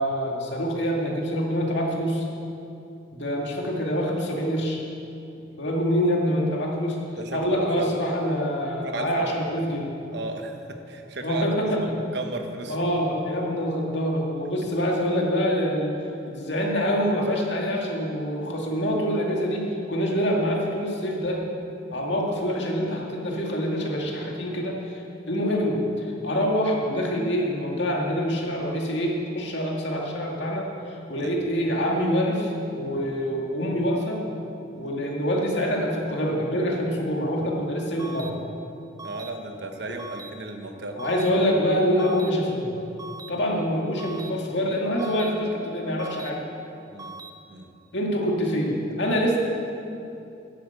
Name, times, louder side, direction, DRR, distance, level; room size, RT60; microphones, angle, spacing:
voice 1, 0.0-2.2 3.1-4.8 5.6-7.0 7.3-9.9 11.2-12.0 12.7-15.9 16.3-21.4 21.9-30.7 31.1-34.2 34.8-38.4 40.9-42.8 43.3-46.4 47.9-49.4, equal, 60° left, -1 dB, 2.2 m, -25 dB
voice 2, 7.1-7.5 7.8-7.9 8.9-9.3 10.1-11.5 11.8-12.8 21.9-22.1 31.2-31.4 39.0-41.1 46.9-47.1 47.5-47.7, right 2 dB, 60° right, 5 dB, 1.2 m, -35 dB
sound 1, 38.0-38.3 39.0-39.3 40.0-40.3 41.0-41.3 42.0-42.3 43.0-43.3 44.0-44.3 45.0-45.3 46.0-46.3 47.0-47.3, right 3 dB, 20° right, 0.5 m, -40 dB
10.5 x 8.7 x 8.2 m, 2.7 s
head